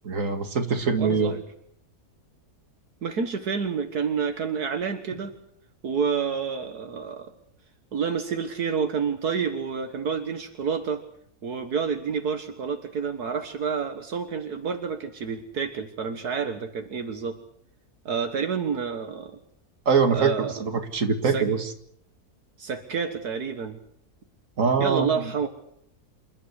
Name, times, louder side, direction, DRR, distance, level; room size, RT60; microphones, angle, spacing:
voice 1, 0.0-1.3 19.9-20.3 20.6-21.7 24.6-25.1, right 5 dB, 55° right, 6 dB, 2.4 m, -23 dB
voice 2, 1.0-1.4 3.0-5.3 5.8-7.3 7.9-11.0 11.4-17.4 18.1-19.4 20.1-20.6 21.2-21.5 22.6-23.8 24.8-25.5, right 6 dB, 75° right, 6 dB, 2.0 m, -29 dB
28.5 x 13.5 x 9.8 m, 0.69 s
omnidirectional pair, 1.7 m